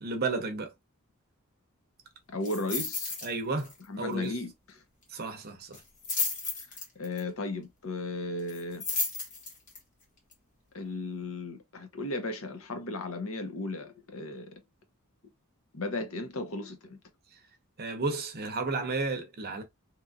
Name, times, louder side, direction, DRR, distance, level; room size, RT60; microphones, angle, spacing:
voice 1, 0.0-0.7 3.2-3.7 4.0-4.4 5.1-5.8 17.8-19.6, right 3 dB, 45° right, 0.7 m, -32 dB
voice 2, 2.3-3.1 3.9-4.5 7.0-8.8 10.7-14.6 15.7-17.0, left 2 dB, 65° left, 0.8 m, -35 dB
sound 1, 2.4-3.3 3.6-3.8 4.1-4.2 5.7-7.2 8.5-9.8 10.3-10.4, left 4 dB, 35° left, 1.1 m, -33 dB
2.9 x 2.5 x 2.3 m
head